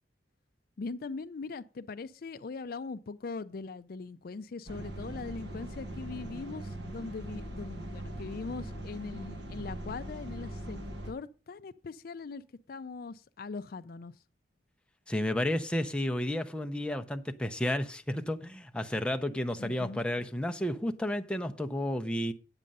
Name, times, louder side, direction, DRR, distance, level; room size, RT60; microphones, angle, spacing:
voice 1, 0.8-10.8 11.0-12.4 12.7-14.1 19.6-20.0, left 4 dB, 50° left, 0.4 m, -41 dB
sound 1, 4.7-11.1, right 1 dB, 65° right, 1.4 m, -41 dB
voice 2, 15.1-22.3, left 1 dB, 5° left, 0.6 m, -32 dB
8.9 x 7.4 x 5.3 m
head